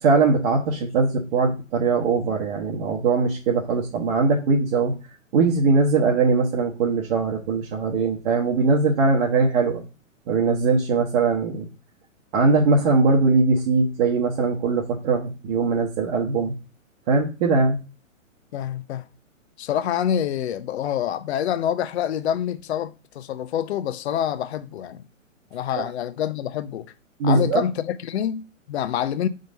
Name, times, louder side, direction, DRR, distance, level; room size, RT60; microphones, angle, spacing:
voice 1, 0.0-4.9 5.3-9.8 10.3-11.7 12.3-16.5 17.1-17.8 27.2-27.6, right 4 dB, 45° right, 1.2 m, -21 dB
voice 2, 18.5-19.0 19.6-25.0 25.5-26.9 27.2-29.3, left 10 dB, 55° left, 0.7 m, -26 dB
5.2 x 3.9 x 5.3 m
figure-of-eight pair, 120°, 40 cm